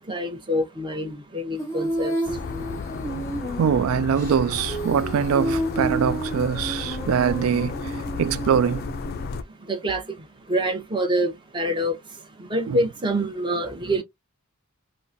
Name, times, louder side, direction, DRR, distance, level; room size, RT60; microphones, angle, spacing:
voice 1, 0.1-2.1 9.7-10.0 10.5-12.0 12.4-14.0, right 1 dB, 25° right, 0.8 m, -26 dB
Female singing, 1.6-9.3, right 2 dB, 15° left, 0.7 m, -31 dB
sound 1, 2.3-9.4, left 5 dB, 45° left, 0.3 m, -33 dB
voice 2, 3.6-7.8 8.2-8.9 12.7-12.8, right 7 dB, 70° right, 0.3 m, -23 dB
3.8 x 2.1 x 2.5 m
head